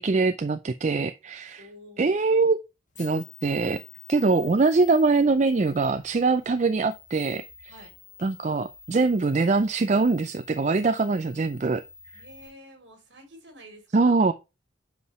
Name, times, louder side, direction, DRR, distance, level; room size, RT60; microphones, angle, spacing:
voice 1, 0.0-1.7 2.0-2.6 3.0-3.8 4.1-7.7 8.2-11.8 12.1-12.2 13.9-14.3, right 3 dB, 35° right, 0.4 m, -23 dB
voice 2, 1.6-2.2 7.7-8.0 12.1-14.1, equal, 60° right, 3.2 m, -49 dB
sound 1, 2.9-12.5, left 6 dB, 40° left, 2.2 m, -49 dB
8.2 x 4.8 x 3.1 m
head